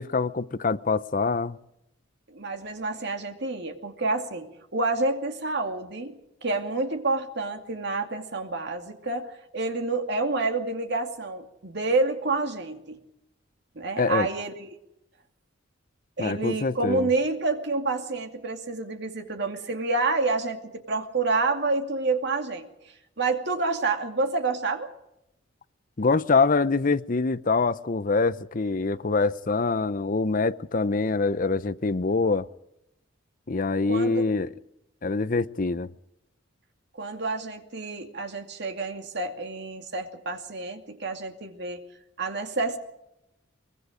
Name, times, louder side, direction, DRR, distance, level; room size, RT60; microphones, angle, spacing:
voice 1, 0.0-1.6 14.0-14.3 16.2-17.1 26.0-32.5 33.5-34.5 35.0-35.9, left 3 dB, 45° left, 0.7 m, -24 dB
voice 2, 2.3-6.1 6.4-13.0 13.8-14.7 16.2-22.7 23.2-24.9 33.9-34.2 37.0-41.8 42.2-42.8, right 3 dB, 60° right, 2.5 m, -28 dB
24.0 x 21.5 x 5.1 m
head